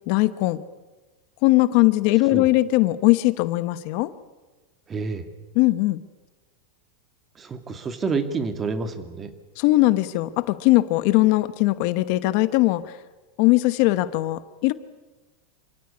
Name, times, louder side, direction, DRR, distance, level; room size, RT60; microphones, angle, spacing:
voice 1, 0.1-0.6 1.4-4.1 5.5-6.0 9.6-12.8 13.4-14.7, left 19 dB, 55° left, 14 dB, 1.0 m, -20 dB
voice 2, 4.9-5.3 7.4-9.3, right 4 dB, 20° right, 8 dB, 2.2 m, -28 dB
27.5 x 16.0 x 9.7 m, 1.2 s
supercardioid pair, 140°, 0 cm